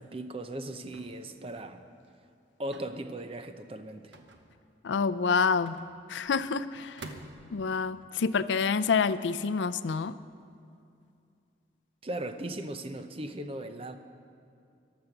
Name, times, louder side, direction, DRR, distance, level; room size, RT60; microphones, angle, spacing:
voice 1, 0.0-1.8 2.6-4.1 12.0-14.0, right 1 dB, 30° right, 8 dB, 0.6 m, -38 dB
sound 1, 0.9-1.4 2.7-3.0 4.1-4.8 5.7-6.4 7.0-7.7, right 2 dB, 75° right, 1.0 m, -47 dB
voice 2, 4.8-5.8 6.1-7.1 7.5-10.2, left 5 dB, 80° left, 14 dB, 0.4 m, -27 dB
14.5 x 11.5 x 6.0 m, 2.5 s
head